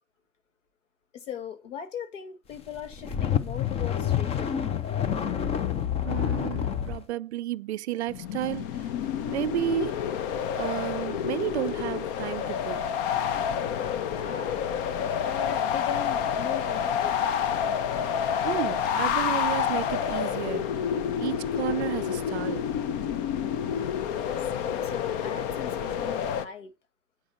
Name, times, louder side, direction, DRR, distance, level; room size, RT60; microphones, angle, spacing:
voice 1, 1.1-4.8 14.0-14.6 15.2-17.2 24.1-26.7, left 8 dB, 60° left, 2.1 m, -39 dB
sound 1, 2.8-7.0, left 9 dB, 15° left, 0.5 m, -28 dB
voice 2, 6.0-8.7 9.3-9.9 10.5-12.8 18.4-20.7 21.2-22.7, right 13 dB, 50° right, 0.5 m, -32 dB
sound 2, 8.1-26.4, left 8 dB, 40° left, 0.9 m, -29 dB
8.9 x 5.0 x 5.5 m
figure-of-eight pair, 100°, 42 cm